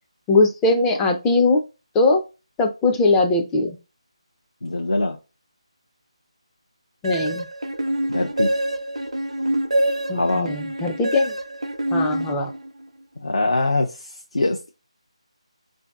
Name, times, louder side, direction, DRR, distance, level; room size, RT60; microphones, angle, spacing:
voice 1, 0.3-1.6 1.9-2.2 2.6-3.8 7.0-7.5 10.1-11.3 11.9-12.5, left 2 dB, 10° left, 0.4 m, -20 dB
voice 2, 4.6-5.2 8.1-8.5 10.1-10.5 13.2-14.7, left 2 dB, 70° left, 0.6 m, -23 dB
sound 1, 7.0-12.9, right 1 dB, 70° right, 0.7 m, -26 dB
4.3 x 2.6 x 2.3 m
figure-of-eight pair, 155°, 3 cm